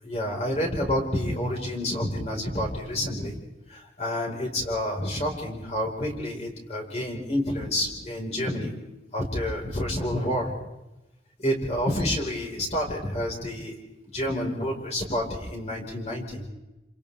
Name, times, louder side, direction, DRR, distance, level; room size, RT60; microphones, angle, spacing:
voice 1, 0.0-3.4 3.7-8.7 9.1-10.5 11.4-13.7 14.1-16.5, left 1 dB, 35° left, -1 dB, 5.0 m, -29 dB
29.0 x 27.0 x 3.6 m, 1.0 s
head